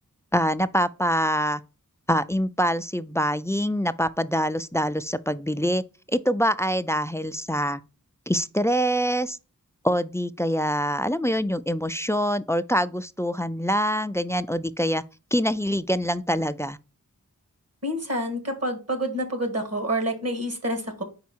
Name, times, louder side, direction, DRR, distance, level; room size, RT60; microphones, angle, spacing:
voice 1, 0.3-1.6 2.1-5.8 6.1-7.8 8.3-9.4 9.8-15.0 15.3-16.8, equal, 10° left, 0.3 m, -25 dB
voice 2, 17.8-21.0, right 1 dB, 45° right, 1.8 m, -28 dB
5.1 x 4.6 x 4.3 m
wide cardioid pair, 55°, 34 cm